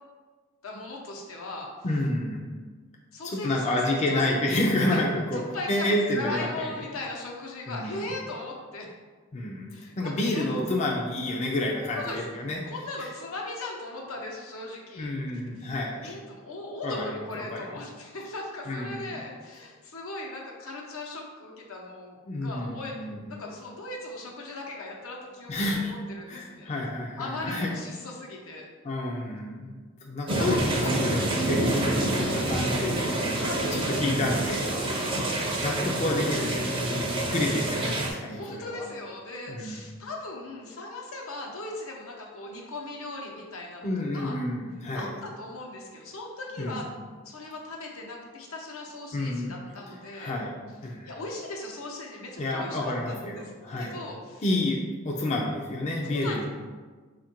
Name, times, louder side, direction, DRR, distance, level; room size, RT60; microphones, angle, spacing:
voice 1, 0.6-1.7 3.1-4.2 4.8-5.0 5.3-8.9 9.7-10.5 11.9-12.2 12.6-15.1 15.6-15.7 16.0-22.9 23.3-25.8 26.1-26.7 27.2-28.7 30.3-31.0 33.3-34.0 34.9-35.5 38.3-44.4 44.9-46.9 47.2-50.3 51.0-53.5 53.8-54.4 56.0-56.4, left 2 dB, 80° left, -1 dB, 0.8 m, -38 dB
voice 2, 1.8-2.5 3.2-5.4 5.7-6.7 7.7-8.1 9.3-9.7 10.0-12.6 13.0-13.1 15.0-16.2 16.8-17.7 18.7-19.2 22.3-23.3 25.5-25.9 26.3-27.7 28.8-34.7 34.9-35.1 35.6-38.9 39.5-39.8 43.8-45.1 46.6-46.8 49.1-49.5 50.1-50.5 50.8-51.1 52.4-54.0 54.4-54.8 55.0-56.4, left 1 dB, 30° left, -1 dB, 0.4 m, -29 dB
sound 1, 30.3-38.1, right 1 dB, 25° right, 0.5 m, -27 dB
4.4 x 2.5 x 4.3 m, 1.4 s
head